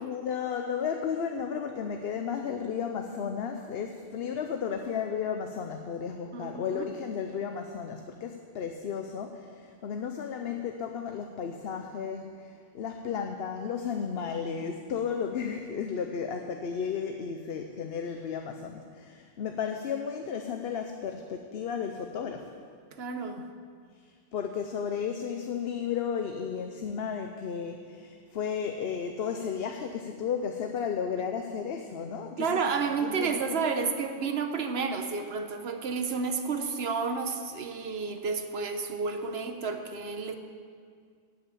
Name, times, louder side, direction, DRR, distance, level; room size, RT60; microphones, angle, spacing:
voice 1, 0.0-22.5 24.3-32.5 33.0-33.6, left 7 dB, 75° left, 5 dB, 0.9 m, -33 dB
voice 2, 6.3-6.9 23.0-23.4 32.4-40.4, right 5 dB, 80° right, 6 dB, 1.2 m, -31 dB
14.5 x 5.9 x 8.4 m, 2.1 s
omnidirectional pair, 1.0 m